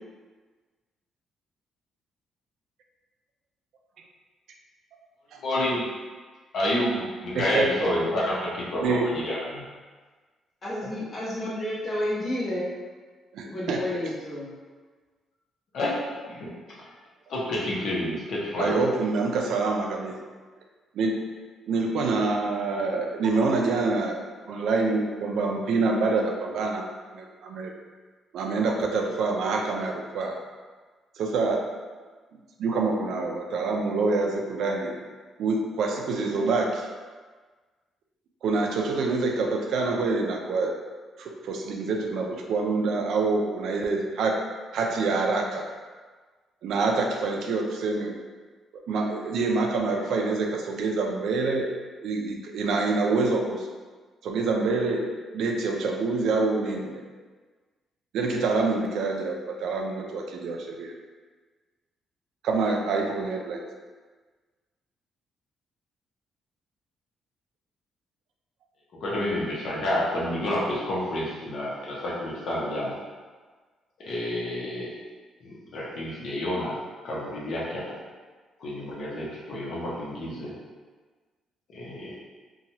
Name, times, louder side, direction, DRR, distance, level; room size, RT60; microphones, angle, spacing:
voice 1, 5.4-5.8 6.5-9.6 10.8-10.9 15.7-16.0 16.3-16.5 17.3-18.7 69.0-72.9 74.0-74.9 75.4-76.7 77.0-77.8 78.6-80.5 81.7-82.1, left 1 dB, 65° left, -6 dB, 0.8 m, -29 dB
voice 2, 7.3-7.9 8.8-9.1 13.3-13.8 18.6-20.1 20.9-21.2 21.7-26.8 27.1-27.7 28.3-30.3 31.2-31.6 32.6-35.0 35.4-36.9 38.4-40.7 41.2-44.4 44.7-45.7 46.6-48.1 48.9-51.7 52.0-53.7 54.2-55.1 55.3-57.0 58.1-60.9 62.4-63.7, right 3 dB, 75° right, 1 dB, 0.4 m, -26 dB
voice 3, 10.6-12.7 13.4-14.5, left 1 dB, 35° left, -8 dB, 1.2 m, -30 dB
2.9 x 2.3 x 2.7 m, 1.4 s
cardioid pair, 90°, 0 cm